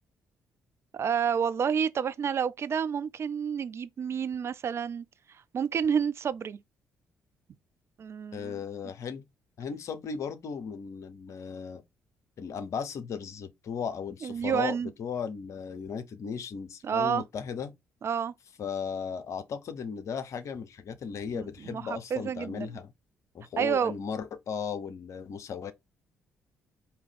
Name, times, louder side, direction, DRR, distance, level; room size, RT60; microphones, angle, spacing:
voice 1, 0.9-5.0 5.5-6.6 8.0-8.6 14.2-14.9 16.8-17.2 18.0-18.3 21.3-22.7 23.6-23.9, right 7 dB, 45° right, 0.4 m, -29 dB
voice 2, 8.3-9.2 9.6-11.8 12.4-17.7 18.6-22.9 23.3-25.7, left 6 dB, 50° left, 0.7 m, -36 dB
4.7 x 2.9 x 3.5 m
figure-of-eight pair, 40°, 6 cm